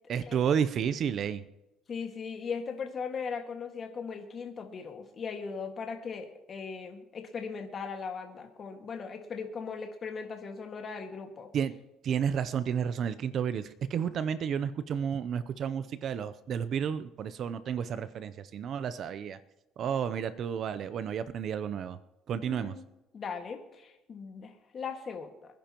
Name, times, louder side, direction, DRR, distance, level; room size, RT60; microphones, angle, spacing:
voice 1, 0.1-1.4 11.5-11.7 12.0-19.4 19.8-22.0 22.3-22.8, right 8 dB, 50° right, 14 dB, 0.6 m, -31 dB
voice 2, 1.9-11.5 22.4-22.8 23.1-25.3, left 5 dB, 35° left, 4 dB, 1.8 m, -38 dB
25.0 x 10.5 x 3.0 m, 0.97 s
cardioid pair, 125°, 0 cm